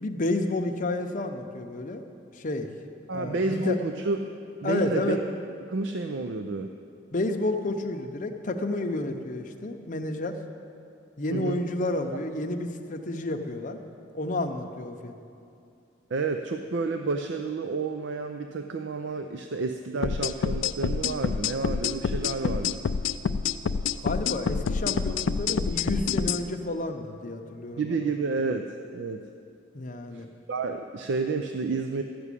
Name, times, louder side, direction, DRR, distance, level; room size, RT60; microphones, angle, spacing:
voice 1, 0.0-2.0 2.4-2.7 3.1-3.8 4.6-5.2 7.1-10.4 11.2-13.8 14.1-15.1 24.0-27.8 29.7-30.3, left 2 dB, 40° left, 5 dB, 0.7 m, -30 dB
voice 2, 3.1-4.2 4.6-5.2 5.7-6.7 11.3-11.6 16.1-22.8 27.8-28.7 28.9-29.2 30.1-32.0, right 3 dB, 60° right, 6 dB, 0.4 m, -30 dB
sound 1, 20.0-26.4, left 6 dB, 70° left, 0.4 m, -27 dB
12.0 x 6.1 x 8.3 m, 2.6 s
head